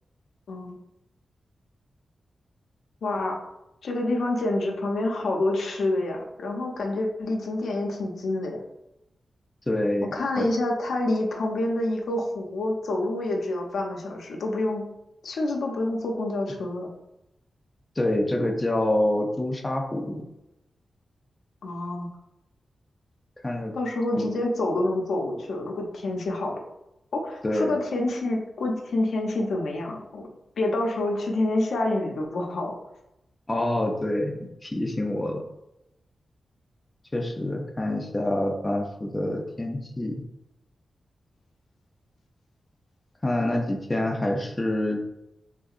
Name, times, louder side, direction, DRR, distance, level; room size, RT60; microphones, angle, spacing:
voice 1, 3.0-3.4 3.8-8.6 10.0-14.8 15.2-16.9 21.6-22.1 23.7-26.5 27.1-30.2 30.6-32.7, left 2 dB, 90° left, 1 dB, 0.6 m, -27 dB
voice 2, 9.7-10.1 10.4-10.5 18.0-20.2 23.4-23.7 24.2-24.3 27.4-27.7 33.5-35.4 37.1-40.2 43.2-45.0, left 1 dB, 15° left, 1 dB, 0.4 m, -26 dB
3.6 x 2.7 x 2.4 m, 0.87 s
wide cardioid pair, 160°, 0 cm